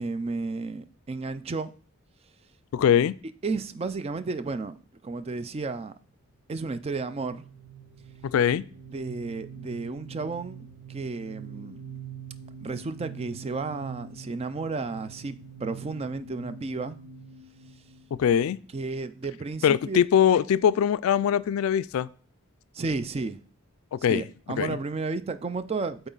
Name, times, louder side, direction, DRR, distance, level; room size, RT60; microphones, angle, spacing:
voice 1, 0.0-1.7 3.4-5.9 6.5-7.5 8.9-11.8 12.6-17.0 18.7-20.0 22.7-23.4 24.1-26.1, right 3 dB, 30° right, 0.4 m, -32 dB
voice 2, 2.7-3.1 8.2-8.6 18.1-18.6 19.6-22.1 23.9-24.2 24.6-24.8, left 8 dB, 70° left, 0.3 m, -22 dB
sound 1, 6.8-19.0, right 5 dB, 80° right, 0.8 m, -45 dB
8.2 x 4.0 x 3.9 m
head